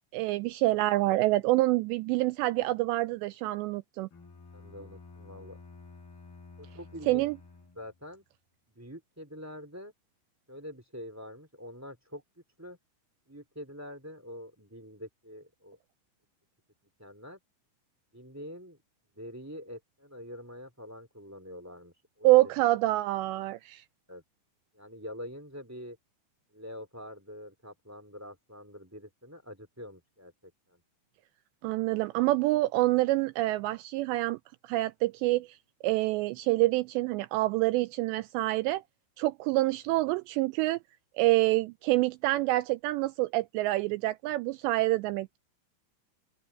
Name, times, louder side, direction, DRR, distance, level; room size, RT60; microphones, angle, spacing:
voice 1, 0.1-4.1 7.1-7.4 22.2-23.8 31.6-34.4 34.6-35.6 35.8-38.8 39.2-40.8 41.2-45.4, right 18 dB, 90° right, 2.5 m, -27 dB
Bowed string instrument, 4.1-8.1, left 4 dB, 55° left, 8.6 m, -51 dB
voice 2, 4.5-5.6 6.6-7.2 7.8-8.2 8.7-9.9 10.5-12.2 12.6-12.8 13.3-15.8 17.0-17.4 18.1-18.8 19.1-22.5 24.1-24.2 24.7-26.0 26.5-30.8, equal, 5° right, 1.8 m, -45 dB
open air
omnidirectional pair, 5.5 m